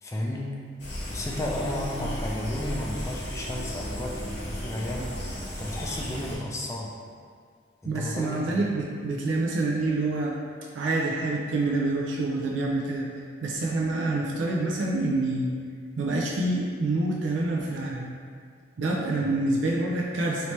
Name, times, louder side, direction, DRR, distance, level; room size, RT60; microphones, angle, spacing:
voice 1, 0.0-0.6 1.1-7.0 7.8-8.7 19.2-19.3, left 1 dB, 15° left, -2 dB, 0.3 m, -33 dB
sound 1, 0.8-6.4, equal, 65° left, 0.9 m, -34 dB
voice 2, 7.8-10.4 10.7-13.1 13.4-15.5 16.0-18.1 18.8-20.5, right 2 dB, 85° right, -2 dB, 0.4 m, -27 dB
3.1 x 2.8 x 3.0 m, 2.1 s
head